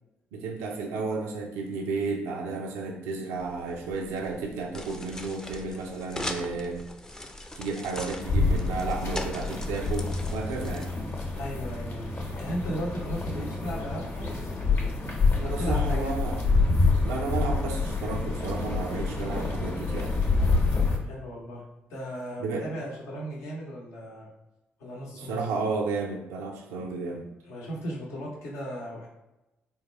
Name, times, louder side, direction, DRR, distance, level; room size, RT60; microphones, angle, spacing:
voice 1, 0.3-6.8 7.6-10.9 15.4-16.4 17.0-20.2 22.4-22.7 25.1-27.3, right 4 dB, 90° right, 1 dB, 0.4 m, -32 dB
sound 1, 3.4-11.4, left 1 dB, 15° left, 0.4 m, -41 dB
sound 2, 8.2-21.0, left 3 dB, 55° left, 0.9 m, -27 dB
voice 2, 11.3-14.5 15.3-16.1 20.9-24.3 24.8-25.4 27.5-29.1, equal, 85° left, -3 dB, 0.8 m, -36 dB
3.6 x 2.2 x 3.0 m, 0.97 s
supercardioid pair, 55°, 5 cm